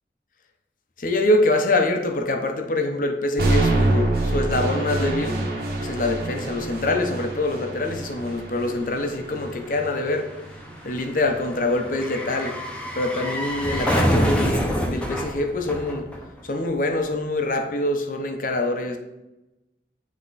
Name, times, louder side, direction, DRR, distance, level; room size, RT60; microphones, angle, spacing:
voice 1, 1.0-5.4 5.8-10.2 10.8-12.5 12.9-16.0 16.4-19.0, left 2 dB, 50° left, 4 dB, 0.7 m, -25 dB
sound 1, 3.4-11.4, right 2 dB, 55° right, 1.4 m, -26 dB
sound 2, 5.9-6.0 6.2-16.6 16.9-17.0, equal, 5° left, 0.7 m, -28 dB
9.4 x 3.6 x 4.0 m, 0.97 s
head